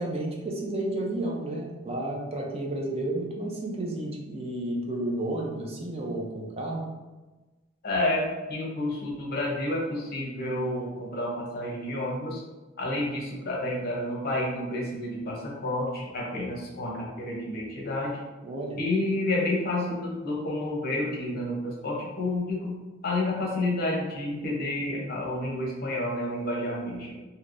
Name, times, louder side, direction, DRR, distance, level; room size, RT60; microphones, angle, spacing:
voice 1, 0.0-6.8 18.4-18.8, right 1 dB, 30° right, -1 dB, 0.5 m, -31 dB
voice 2, 7.8-12.4 12.8-18.2 18.8-22.7 23.0-27.1, left 1 dB, 50° left, -2 dB, 0.8 m, -30 dB
3.3 x 2.7 x 2.5 m, 1.2 s
head